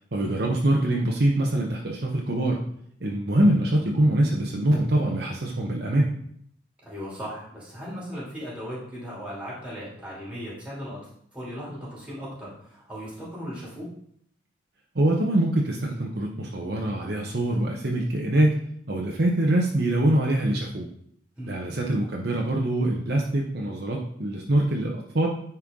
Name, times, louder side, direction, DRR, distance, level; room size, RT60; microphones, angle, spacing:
voice 1, 0.1-2.6 3.0-6.1 14.9-18.6 18.9-20.9 21.5-25.3, right 1 dB, 55° right, -1 dB, 0.9 m, -24 dB
voice 2, 6.8-11.0 11.3-13.9 21.4-21.6, equal, 5° right, -6 dB, 3.0 m, -37 dB
9.8 x 4.5 x 3.8 m, 0.66 s
head